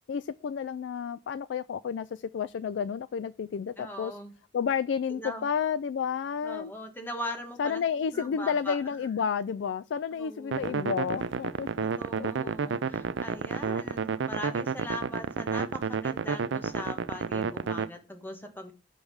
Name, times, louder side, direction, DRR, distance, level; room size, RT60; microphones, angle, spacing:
voice 1, 0.1-4.2 4.5-6.7 7.6-11.9 12.2-12.5, left 7 dB, 85° left, 0.3 m, -31 dB
voice 2, 3.8-4.3 5.1-5.4 6.4-7.8 8.1-9.2 10.1-10.9 11.8-18.7, equal, 10° left, 1.2 m, -40 dB
sound 1, 10.5-17.9, right 6 dB, 90° right, 0.4 m, -31 dB
5.3 x 4.9 x 6.2 m
head